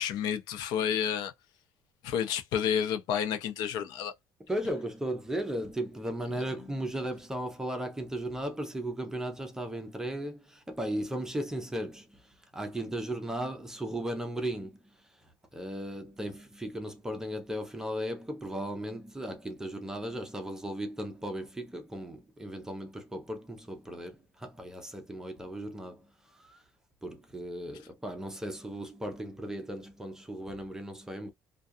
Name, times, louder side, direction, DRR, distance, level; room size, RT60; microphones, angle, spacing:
voice 1, 0.0-1.3 2.0-4.1, left 8 dB, 70° left, 0.6 m, -30 dB
voice 2, 4.5-14.8 15.5-26.1 26.3-26.6 27.0-31.3, right 1 dB, 10° right, 0.6 m, -36 dB
2.4 x 2.3 x 2.6 m
cardioid pair, 150°, 7 cm